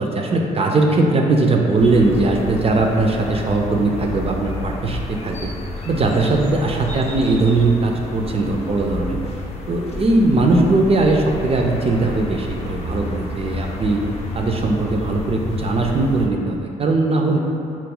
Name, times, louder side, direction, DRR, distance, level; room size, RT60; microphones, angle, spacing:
voice 1, 0.0-5.5 5.8-9.2 9.7-14.0 14.3-17.4, right 2 dB, 35° right, 1 dB, 0.4 m, -19 dB
sound 1, 1.8-16.3, left 2 dB, 40° left, 0.5 m, -31 dB
3.0 x 2.1 x 3.7 m, 2.7 s
supercardioid pair, 60°, 17 cm